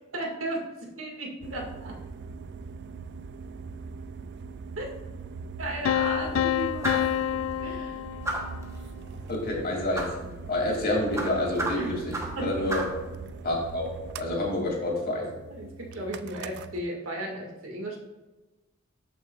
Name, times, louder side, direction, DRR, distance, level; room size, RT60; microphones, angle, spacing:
voice 1, 0.1-0.6 1.0-1.9 4.8-4.9 5.6-8.0 11.7-11.9 12.4-12.5 15.5-18.0, right 1 dB, 80° right, 0 dB, 2.0 m, -35 dB
sound 1, 1.4-16.8, right 4 dB, 55° right, 0.4 m, -41 dB
sound 2, 5.9-8.8, left 10 dB, 70° left, 0.3 m, -28 dB
sound 3, 6.8-7.2 8.2-8.6 9.9-10.2 11.1-12.4 12.7-13.0, right 1 dB, 15° right, 1.0 m, -32 dB
voice 2, 9.3-10.0 10.5-12.8 13.4-13.8 14.2-15.3, left 1 dB, 50° left, -1 dB, 2.6 m, -28 dB
13.5 x 6.0 x 2.4 m, 1.2 s
head